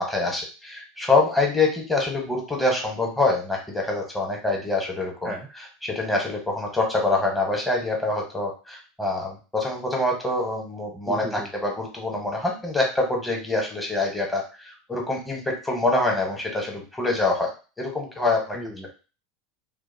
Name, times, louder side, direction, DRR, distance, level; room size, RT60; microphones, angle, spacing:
voice 1, 0.0-17.5 17.8-18.6, left 2 dB, 10° left, -1 dB, 1.0 m, -25 dB
voice 2, 11.1-11.5 18.5-18.9, equal, 10° right, 0 dB, 0.5 m, -35 dB
2.6 x 2.1 x 2.6 m, 0.34 s
hypercardioid pair, 90°, 0 cm